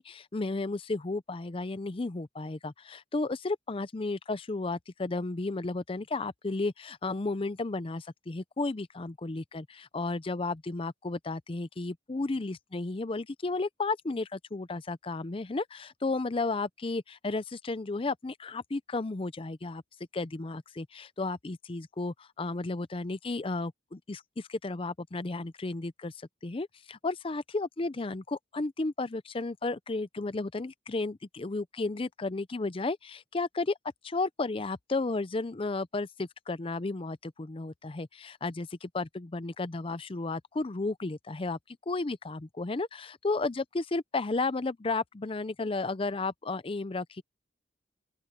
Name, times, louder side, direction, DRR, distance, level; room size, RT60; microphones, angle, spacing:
voice 1, 0.0-19.8 20.1-33.8 34.0-41.6 41.9-47.2, left 3 dB, 30° left, 0.5 m, -33 dB
open air
head